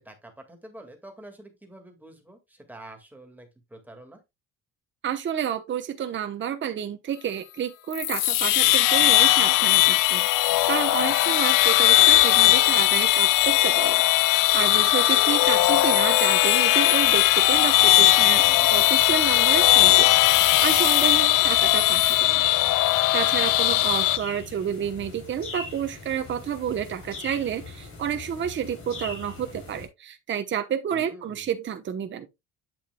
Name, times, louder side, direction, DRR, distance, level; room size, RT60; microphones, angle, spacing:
voice 1, 0.0-4.2 11.0-11.2 18.3-18.7 23.4-23.6 23.8-24.0 30.9-31.5, right 1 dB, 5° right, 1.9 m, -47 dB
voice 2, 5.0-22.5 22.9-32.3, right 9 dB, 35° right, 1.0 m, -30 dB
sound 1, 7.9-24.2, left 16 dB, 80° left, 0.6 m, -19 dB
sound 2, 16.9-29.9, left 3 dB, 45° left, 4.0 m, -42 dB
8.8 x 7.3 x 2.3 m
cardioid pair, 150°, 31 cm